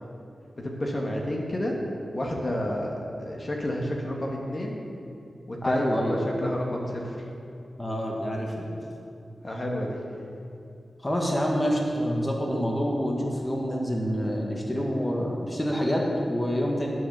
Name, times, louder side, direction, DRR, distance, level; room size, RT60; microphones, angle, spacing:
voice 1, 0.6-1.8 2.1-2.9 3.2-4.8 5.5-5.8 6.1-7.2 9.4-10.0, left 1 dB, 35° left, -1 dB, 1.4 m, -30 dB
voice 2, 5.6-6.2 7.8-8.8 11.0-16.9, equal, 15° left, -2 dB, 1.4 m, -27 dB
9.5 x 6.2 x 6.7 m, 2.5 s
wide cardioid pair, 85°, 0 cm